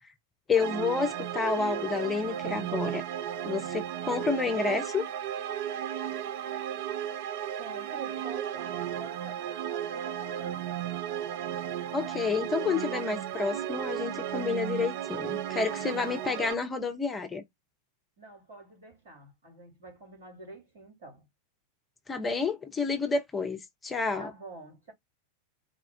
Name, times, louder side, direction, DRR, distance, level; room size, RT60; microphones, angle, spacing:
voice 1, 0.5-3.0 3.4-5.0 11.9-17.4 22.1-24.3, left 4 dB, 15° left, 0.8 m, -30 dB
sound 1, 0.5-16.5, right 10 dB, 50° right, 0.4 m, -34 dB
voice 2, 7.6-10.6 18.2-21.3 24.2-24.9, right 3 dB, 65° right, 2.8 m, -47 dB
4.2 x 2.3 x 3.6 m
figure-of-eight pair, 90°, 0 cm